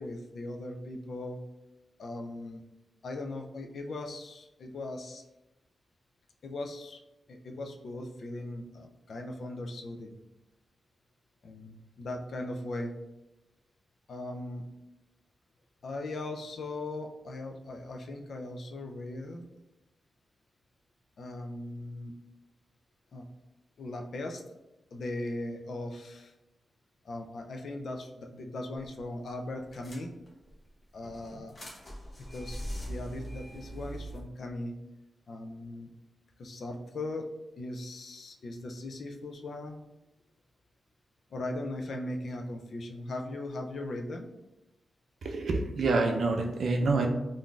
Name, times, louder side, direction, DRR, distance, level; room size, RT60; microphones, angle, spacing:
voice 1, 0.0-1.4 2.0-2.6 3.0-5.2 6.4-7.0 7.3-10.2 11.4-12.9 14.1-14.6 15.8-19.4 21.2-22.1 23.1-23.3 23.8-24.4 24.9-26.3 27.0-30.1 30.9-31.5 32.2-32.6 32.9-34.7 35.3-35.9 36.4-37.3 37.6-39.8 41.3-44.3, left 2 dB, 65° left, 3 dB, 0.3 m, -39 dB
sound 1, 28.8-29.0 29.3-29.4 29.7-30.5 31.0-34.2, equal, 35° left, 0.7 m, -41 dB
voice 2, 45.2-47.1, right 3 dB, 70° right, 3 dB, 0.4 m, -27 dB
3.7 x 2.5 x 2.3 m, 0.97 s
wide cardioid pair, 120°, 0 cm